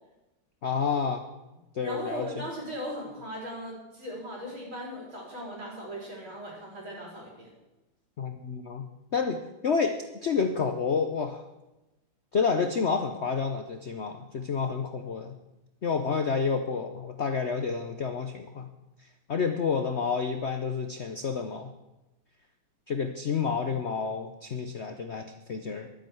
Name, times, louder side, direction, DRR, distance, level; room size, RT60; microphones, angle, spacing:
voice 1, 0.6-1.2 1.7-2.4 8.2-8.9 9.1-11.5 12.3-15.4 15.8-18.7 19.3-21.7 22.9-25.9, left 5 dB, 85° left, 7 dB, 0.5 m, -29 dB
voice 2, 1.8-7.5, equal, 70° right, -3 dB, 4.9 m, -38 dB
11.5 x 9.2 x 7.8 m, 1.0 s
omnidirectional pair, 2.3 m